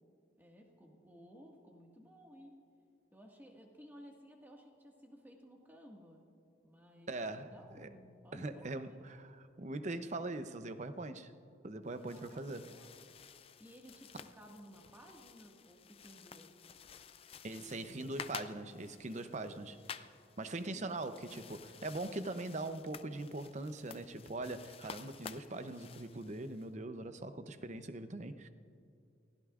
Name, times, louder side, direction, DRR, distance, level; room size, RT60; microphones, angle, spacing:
voice 1, 0.4-2.6 3.1-6.2 6.6-8.8 12.1-12.9 13.6-16.5 17.6-18.2 20.6-21.0, equal, 10° right, 0 dB, 1.7 m, -57 dB
voice 2, 7.1-7.9 8.3-11.3 11.6-12.6 17.4-19.8 20.4-28.5, right 2 dB, 35° right, 10 dB, 0.7 m, -41 dB
sound 1, 11.9-26.7, left 6 dB, 30° left, 0.4 m, -52 dB
28.0 x 15.5 x 2.5 m, 2.5 s
head